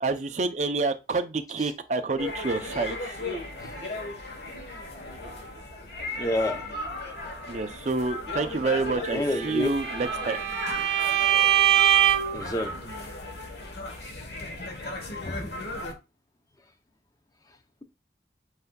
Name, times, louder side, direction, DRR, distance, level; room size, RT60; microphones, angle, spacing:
voice 1, 0.0-3.1 7.5-10.4, right 3 dB, 40° right, 0.4 m, -28 dB
sound 1, 2.2-15.9, left 2 dB, 70° left, 1.1 m, -36 dB
voice 2, 6.2-6.6 9.1-9.7 12.3-12.8 15.2-15.5, left 1 dB, 20° left, 0.5 m, -28 dB
Bowed string instrument, 9.4-12.4, right 10 dB, 85° right, 0.8 m, -23 dB
7.8 x 2.6 x 2.2 m
head